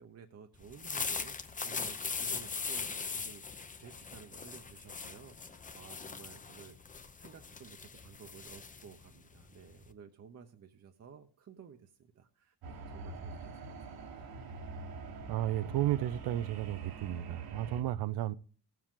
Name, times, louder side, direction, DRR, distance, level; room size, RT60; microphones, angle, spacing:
voice 1, 0.0-14.5, right 7 dB, 40° right, 0.8 m, -55 dB
sound 1, 0.6-9.9, left 5 dB, 20° left, 0.7 m, -40 dB
sound 2, 12.6-17.8, right 3 dB, 65° right, 1.4 m, -45 dB
voice 2, 15.3-18.3, right 13 dB, 85° right, 0.6 m, -33 dB
17.0 x 7.6 x 3.7 m
cardioid pair, 135°, 40 cm